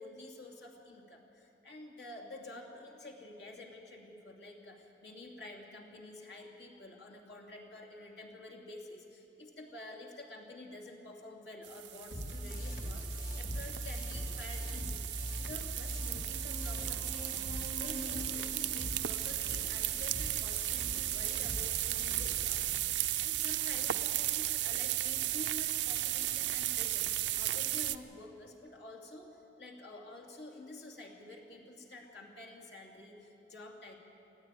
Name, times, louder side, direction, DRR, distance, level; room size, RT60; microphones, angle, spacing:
voice 1, 0.0-33.9, left 2 dB, 70° left, -1 dB, 2.7 m, -49 dB
sound 1, 11.6-28.0, right 14 dB, 80° right, 0.6 m, -35 dB
sound 2, 12.1-22.7, equal, 55° left, 4.0 m, -42 dB
sound 3, 16.2-21.2, left 2 dB, 30° left, 1.4 m, -48 dB
19.5 x 14.0 x 9.8 m, 2.9 s
head